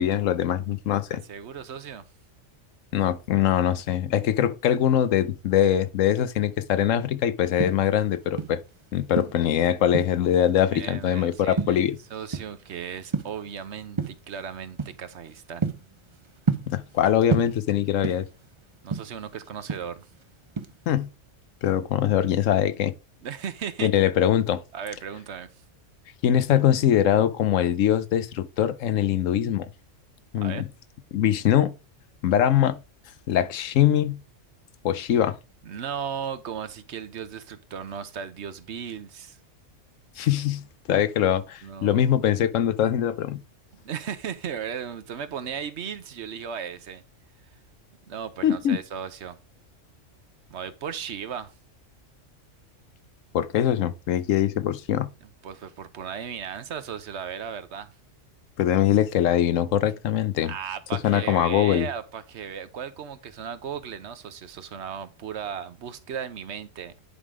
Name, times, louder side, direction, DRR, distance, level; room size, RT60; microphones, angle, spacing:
voice 1, 0.0-1.2 2.9-8.6 8.9-12.0 16.7-18.3 20.9-21.1 21.6-22.9 23.8-24.6 26.2-29.7 30.3-30.7 31.1-31.7 32.2-32.8 33.3-34.2 34.8-35.4 40.2-43.4 48.4-48.8 53.3-55.1 58.6-60.5 61.0-61.9, left 10 dB, 80° left, 1.1 m, -22 dB
voice 2, 1.3-2.0 10.7-11.8 12.1-15.7 18.8-20.1 23.2-23.9 24.7-25.5 30.4-30.6 35.6-39.4 41.6-42.1 43.7-47.0 48.1-49.4 50.5-51.5 55.2-57.9 60.4-67.1, right 7 dB, 65° right, 1.0 m, -36 dB
sound 1, 7.4-8.7 9.1-10.4 10.8-11.1 11.6-12.7 13.0-13.5 14.0-14.3 14.8-15.0 15.4-17.0 17.3-18.4 18.7-20.2 20.6-20.9, right 5 dB, 30° right, 0.7 m, -29 dB
10.0 x 3.7 x 4.9 m
omnidirectional pair, 1.3 m